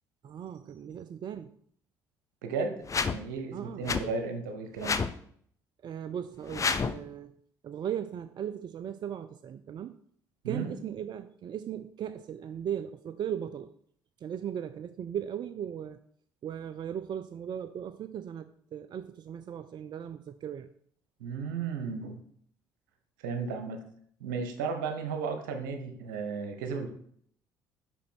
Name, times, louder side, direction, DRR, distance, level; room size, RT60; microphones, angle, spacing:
voice 1, 0.2-1.5 3.5-3.9 5.8-7.3 7.6-10.0 10.5-13.7 14.2-16.0 16.4-20.7, right 9 dB, 45° right, 11 dB, 0.4 m, -37 dB
voice 2, 2.4-2.8 3.1-5.0 10.4-10.7 21.2-22.2 23.2-23.8 24.2-26.9, right 5 dB, 80° right, 5 dB, 1.1 m, -34 dB
sound 1, 2.8-3.2 3.8-4.0 4.8-5.1 6.5-7.0, left 5 dB, 30° left, 0.6 m, -29 dB
5.7 x 5.3 x 4.5 m, 0.62 s
hypercardioid pair, 55°, 10 cm